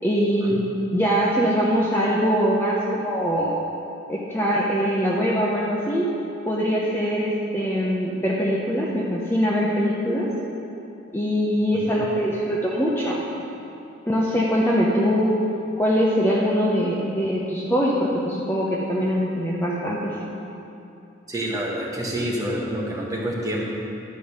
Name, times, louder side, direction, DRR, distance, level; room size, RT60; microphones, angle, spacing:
voice 1, 0.0-0.6 0.9-3.5 4.1-6.1 6.4-10.3 11.1-13.2 14.1-15.4 15.8-20.2, equal, 10° left, -5 dB, 0.8 m, -22 dB
voice 2, 21.3-23.8, right 1 dB, 15° right, -4 dB, 1.4 m, -28 dB
11.5 x 5.4 x 6.5 m, 2.8 s
head